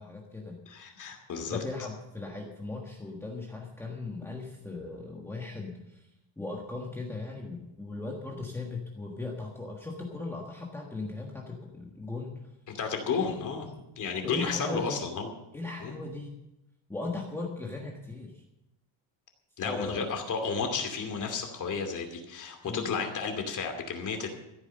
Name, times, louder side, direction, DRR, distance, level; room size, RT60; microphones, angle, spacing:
voice 1, 0.0-0.6 1.5-6.1 6.4-12.3 14.2-15.0 15.5-16.4 16.9-18.4 19.6-20.1 22.6-22.9, left 3 dB, 5° left, -2 dB, 1.4 m, -38 dB
voice 2, 0.7-1.6 12.7-13.7 14.0-15.3 15.8-15.9 19.6-24.3, left 5 dB, 40° left, 4 dB, 2.6 m, -32 dB
14.5 x 9.5 x 6.6 m, 0.92 s
cardioid pair, 165°, 47 cm